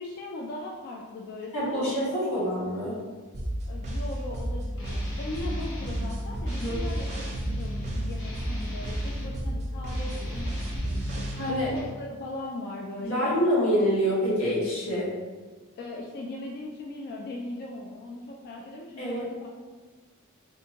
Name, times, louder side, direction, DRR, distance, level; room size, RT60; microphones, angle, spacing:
voice 1, 0.0-2.5 3.6-13.4 15.8-19.5, left 2 dB, 50° left, -1 dB, 0.3 m, -39 dB
voice 2, 1.5-3.0 6.5-6.8 11.4-11.7 13.0-15.1 19.0-19.2, equal, 90° left, -8 dB, 1.4 m, -26 dB
sound 1, 3.3-11.3, right 1 dB, 35° right, 0.5 m, -31 dB
Guitar, 4.8-6.1 6.4-9.4 9.8-12.0, equal, 65° left, 1.0 m, -40 dB
3.5 x 2.5 x 2.8 m, 1.4 s
head